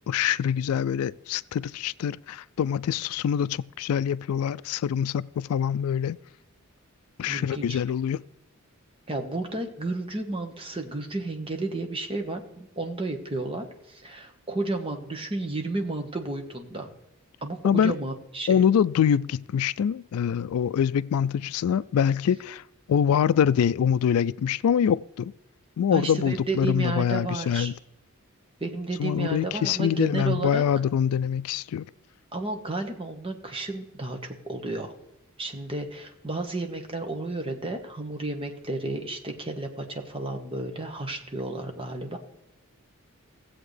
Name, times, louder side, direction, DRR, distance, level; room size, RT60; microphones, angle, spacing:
voice 1, 0.1-6.2 7.2-8.2 17.6-17.9 18.5-22.6 22.9-25.3 25.8-27.7 29.0-31.8, left 8 dB, 80° left, 0.3 m, -24 dB
voice 2, 7.2-7.8 9.1-16.9 17.4-18.6 25.9-27.7 28.6-30.6 32.3-34.9 35.4-42.2, right 2 dB, 25° right, 1.3 m, -32 dB
16.5 x 7.9 x 3.3 m
head